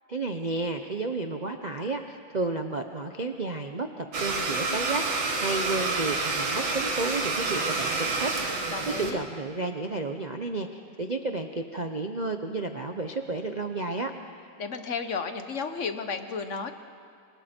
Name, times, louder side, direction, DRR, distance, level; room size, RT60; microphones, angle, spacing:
voice 1, 0.1-14.1, right 3 dB, 55° right, 4 dB, 0.4 m, -32 dB
Domestic sounds home sounds, 4.1-9.1, right 3 dB, 75° right, 2.7 m, -28 dB
voice 2, 8.7-9.2 14.6-16.7, left 5 dB, 45° left, 8 dB, 1.1 m, -33 dB
29.0 x 24.5 x 4.4 m, 2.3 s
omnidirectional pair, 2.1 m